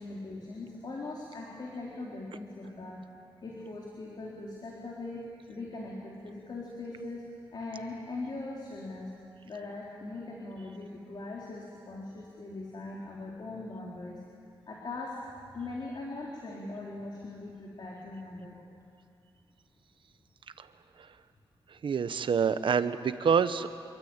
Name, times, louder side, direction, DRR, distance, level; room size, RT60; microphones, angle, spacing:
voice 1, 0.0-3.1 3.4-5.2 5.5-7.3 7.5-9.1 9.4-14.2 14.7-15.2 15.5-18.6, left 2 dB, 55° left, -3 dB, 3.9 m, -40 dB
voice 2, 21.7-23.7, right 6 dB, 70° right, 12 dB, 1.1 m, -27 dB
26.5 x 23.5 x 8.9 m, 2.4 s
wide cardioid pair, 110°, 9 cm